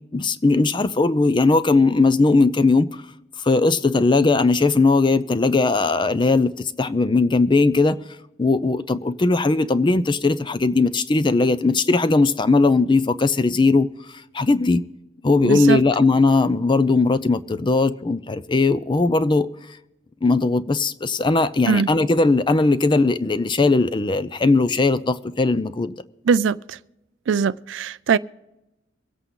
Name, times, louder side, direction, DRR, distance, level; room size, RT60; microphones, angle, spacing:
voice 1, 0.1-2.9 3.4-8.0 8.4-13.9 14.3-14.8 15.2-19.5 20.2-25.9, left 3 dB, 25° left, 0.5 m, -19 dB
voice 2, 15.4-15.8 21.7-21.9 26.3-26.8 27.3-28.2, right 6 dB, 65° right, 0.4 m, -21 dB
24.0 x 8.3 x 3.8 m
head